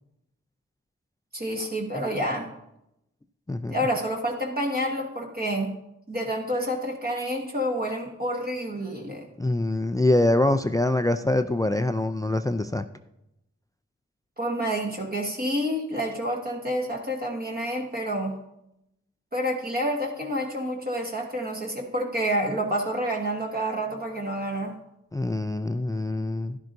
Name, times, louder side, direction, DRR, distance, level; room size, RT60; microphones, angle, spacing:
voice 1, 1.3-2.5 3.7-5.7 6.1-9.2 14.4-18.3 19.3-24.7, equal, 30° right, 0 dB, 1.3 m, -28 dB
voice 2, 9.4-12.9 25.1-26.6, left 2 dB, 10° left, 10 dB, 0.4 m, -24 dB
10.5 x 10.5 x 2.6 m, 0.85 s
cardioid pair, 40°, 30 cm